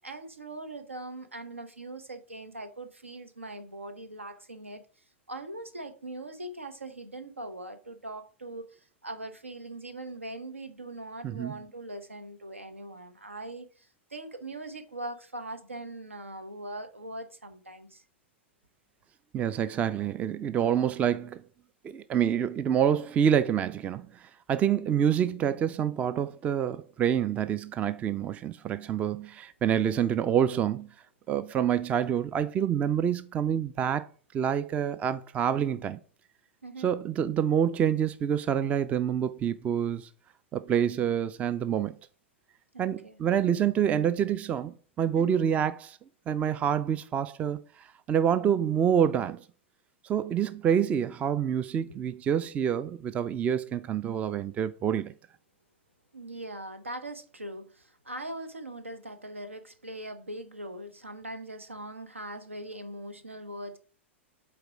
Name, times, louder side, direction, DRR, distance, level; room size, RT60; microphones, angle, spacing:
voice 1, 0.0-4.8 5.3-18.0 36.6-36.9 42.7-43.2 45.1-45.4 56.1-63.8, right 1 dB, 80° right, 1.1 m, -41 dB
voice 2, 11.2-11.6 19.3-21.4 21.8-30.9 31.3-34.1 34.3-36.0 36.8-40.1 40.5-42.0 42.8-46.0 46.3-49.4 50.0-55.1, right 9 dB, 20° right, 0.4 m, -27 dB
8.0 x 4.2 x 4.7 m
figure-of-eight pair, 100°, 7 cm